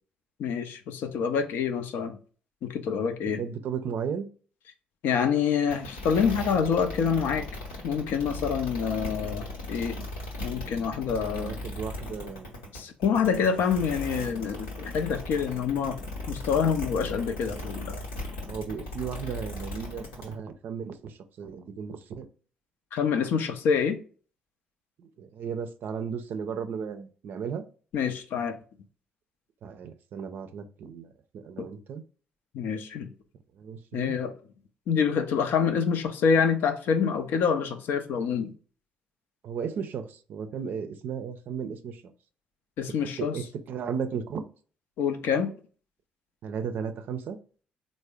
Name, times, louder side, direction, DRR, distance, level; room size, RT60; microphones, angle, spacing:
voice 1, 0.4-2.2 2.6-3.4 5.0-7.5 7.8-10.1 10.4-11.5 12.7-16.0 16.3-18.0 22.9-24.0 27.9-28.6 31.6-31.7 32.5-33.1 33.9-34.3 34.9-38.5 42.8-43.4 45.0-45.5, left 6 dB, 70° left, 0.5 m, -26 dB
voice 2, 3.4-4.3 11.2-12.5 18.5-22.3 25.2-27.6 29.6-32.0 33.6-34.2 39.4-42.0 43.2-44.4 46.4-47.4, right 6 dB, 60° right, 0.4 m, -35 dB
sound 1, 5.7-20.3, left 1 dB, 90° left, 1.0 m, -37 dB
3.5 x 2.1 x 3.4 m
hypercardioid pair, 50°, 4 cm